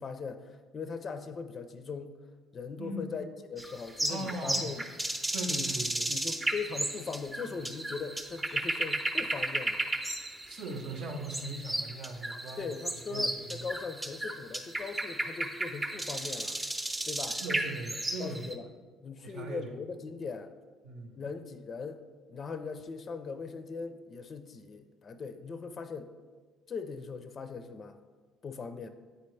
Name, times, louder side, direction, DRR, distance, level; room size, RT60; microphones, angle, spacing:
voice 1, 0.0-2.1 2.5-3.2 3.5-4.8 5.5-5.7 6.1-9.8 12.6-16.6 17.1-17.4 18.2-18.6 19.0-20.5 21.2-22.0 22.3-26.1 26.7-28.0 28.4-28.9, left 5 dB, 45° left, 9 dB, 0.4 m, -40 dB
sound 1, 3.6-18.5, right 1 dB, 20° right, 0.7 m, -34 dB
voice 2, 4.1-4.7 5.3-6.1 10.1-12.7 13.1-13.7 17.3-18.5 19.2-19.7 20.8-21.3, right 2 dB, 65° right, 4 dB, 0.9 m, -39 dB
8.0 x 4.2 x 3.2 m, 1.4 s
supercardioid pair, 70°, 0 cm